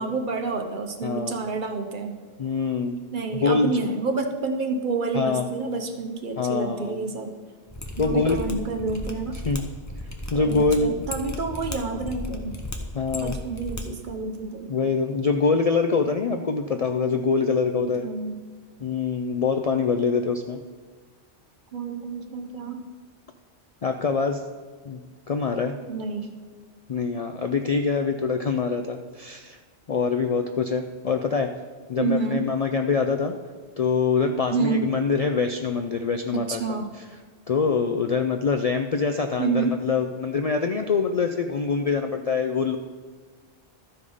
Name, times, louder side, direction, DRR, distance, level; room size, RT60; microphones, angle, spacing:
voice 1, 0.0-2.2 3.1-7.3 8.0-9.4 10.3-12.6 13.1-14.8 17.8-18.4 21.7-22.8 25.9-26.4 32.0-32.5 34.5-34.9 36.3-36.9 39.4-39.8, right 4 dB, 50° right, 5 dB, 0.9 m, -29 dB
voice 2, 1.0-1.3 2.4-3.0 3.3-3.8 5.1-5.5 6.4-7.0 8.0-8.6 9.5-9.7 10.3-11.0 12.9-13.4 14.7-18.1 18.8-20.6 23.8-24.4 24.8-25.0 25.3-25.7 26.9-29.6 29.9-31.5 31.9-33.3 33.8-36.8 37.5-42.8, left 4 dB, 55° left, 5 dB, 0.4 m, -24 dB
Mechanisms, 7.7-13.8 14.1-14.2, left 1 dB, 15° left, 0.8 m, -35 dB
13.0 x 4.9 x 5.4 m, 1.4 s
omnidirectional pair, 1.1 m